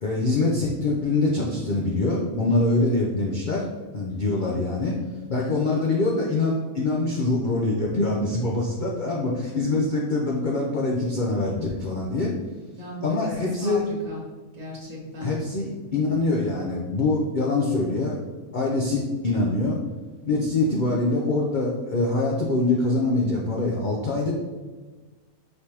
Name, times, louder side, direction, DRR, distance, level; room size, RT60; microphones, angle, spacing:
voice 1, 0.0-3.6 3.9-5.0 5.3-12.3 13.0-13.9 15.2-18.2 18.5-19.8 20.3-24.3, left 2 dB, 90° left, -2 dB, 0.4 m, -24 dB
voice 2, 12.8-14.2 14.5-15.3, left 1 dB, 20° right, -5 dB, 1.1 m, -35 dB
5.0 x 3.3 x 2.9 m, 1.3 s
omnidirectional pair, 1.6 m